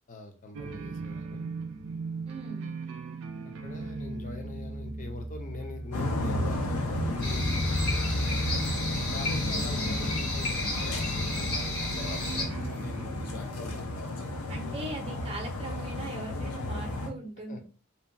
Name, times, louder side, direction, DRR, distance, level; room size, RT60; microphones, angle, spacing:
voice 1, 0.1-1.5 3.6-8.1 9.1-13.3 14.6-14.7 17.5-17.6, left 3 dB, 35° left, 4 dB, 0.5 m, -43 dB
sound 1, 0.5-14.1, right 4 dB, 65° right, 0.4 m, -41 dB
voice 2, 2.3-2.7 9.3-10.2 14.5-17.6, right 2 dB, 25° right, 2 dB, 0.6 m, -40 dB
sound 2, 5.9-17.1, left 1 dB, 90° left, 0.5 m, -32 dB
sound 3, 7.2-12.4, left 2 dB, 70° left, 1.0 m, -33 dB
2.7 x 2.2 x 2.6 m, 0.36 s
head